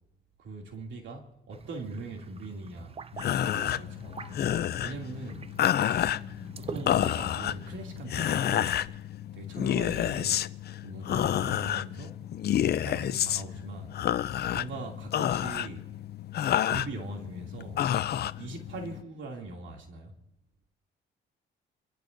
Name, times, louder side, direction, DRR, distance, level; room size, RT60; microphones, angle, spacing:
voice 1, 0.4-2.9 3.3-4.1 4.8-5.5 6.6-8.8 9.3-10.4 10.8-12.2 12.8-14.0 14.5-15.9 16.6-17.8 18.4-20.2, right 2 dB, 75° right, 2.7 m, -41 dB
sound 1, 1.5-8.0, right 5 dB, 30° right, 0.5 m, -45 dB
sound 2, 3.1-19.0, left 11 dB, 55° left, 0.5 m, -30 dB
voice 2, 4.0-4.4 6.1-6.7 18.8-19.0, left 4 dB, 30° left, 7.8 m, -50 dB
29.0 x 15.5 x 2.7 m
cardioid pair, 90°, 20 cm